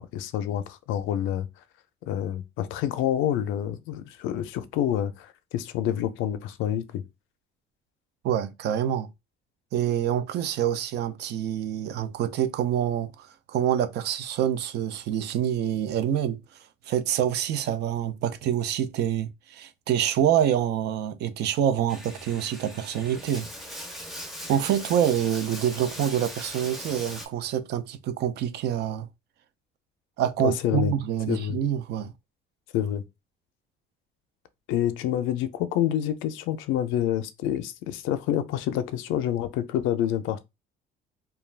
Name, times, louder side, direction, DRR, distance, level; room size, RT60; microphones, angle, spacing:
voice 1, 0.0-1.5 2.1-7.0 30.4-30.9 31.3-31.6 32.7-33.0 34.7-40.4, left 11 dB, 90° left, 0.4 m, -27 dB
voice 2, 8.2-9.1 9.7-16.4 16.9-23.8 24.5-29.1 30.2-32.1, right 10 dB, 60° right, 0.4 m, -26 dB
Bathtub (filling or washing), 21.9-27.3, equal, ahead, 0.5 m, -40 dB
2.3 x 2.2 x 3.2 m
cardioid pair, 150°, 20 cm